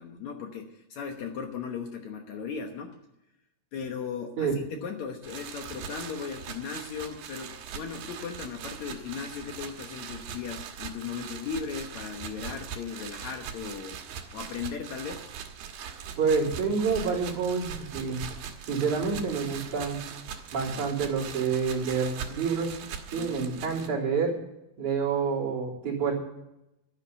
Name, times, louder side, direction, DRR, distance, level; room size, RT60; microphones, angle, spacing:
voice 1, 0.0-3.0 3.7-14.0 14.3-15.2 23.1-23.5, left 6 dB, 65° left, 4 dB, 2.2 m, -37 dB
sound 1, 5.2-23.9, right 8 dB, 85° right, 3.2 m, -41 dB
voice 2, 16.2-18.3 18.7-20.0 20.5-22.7 23.1-24.3 24.8-26.1, right 5 dB, 60° right, -4 dB, 4.7 m, -28 dB
12.0 x 10.5 x 6.8 m, 0.89 s
omnidirectional pair, 4.0 m